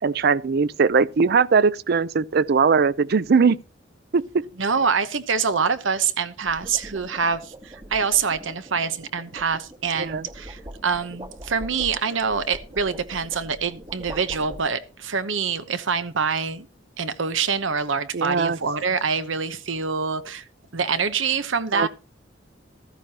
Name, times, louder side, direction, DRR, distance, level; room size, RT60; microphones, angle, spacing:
voice 1, 0.0-3.6 4.1-4.4 10.0-10.3 18.1-18.6 21.7-21.9, right 5 dB, 55° right, 0.5 m, -20 dB
sound 1, 0.7-1.0 6.2-15.1, right 1 dB, 25° right, 1.2 m, -42 dB
voice 2, 4.6-16.7 17.0-20.4 20.7-21.9, right 5 dB, 85° right, 1.0 m, -25 dB
14.5 x 13.5 x 2.9 m
head